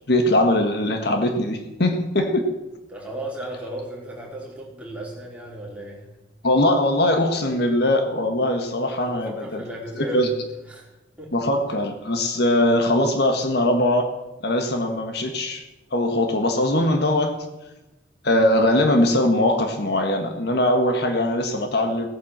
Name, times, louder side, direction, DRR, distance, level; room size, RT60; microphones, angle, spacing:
voice 1, 0.1-2.5 6.4-9.6 10.0-10.3 11.3-14.1 14.4-15.6 15.9-17.3 18.2-22.1, left 1 dB, 60° left, 5 dB, 1.6 m, -21 dB
voice 2, 2.9-6.1 8.9-11.3, right 1 dB, 5° right, -4 dB, 4.6 m, -36 dB
17.5 x 9.2 x 7.4 m, 1.0 s
head